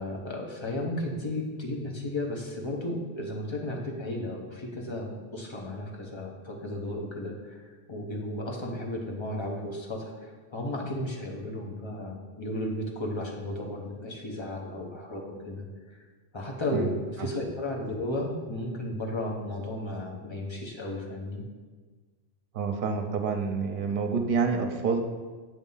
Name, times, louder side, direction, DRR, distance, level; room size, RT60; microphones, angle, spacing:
voice 1, 0.0-16.0 16.3-21.4, left 1 dB, 30° left, -1 dB, 0.8 m, -34 dB
voice 2, 22.5-25.0, right 5 dB, 60° right, 4 dB, 0.8 m, -28 dB
7.5 x 2.7 x 5.5 m, 1.4 s
omnidirectional pair, 1.1 m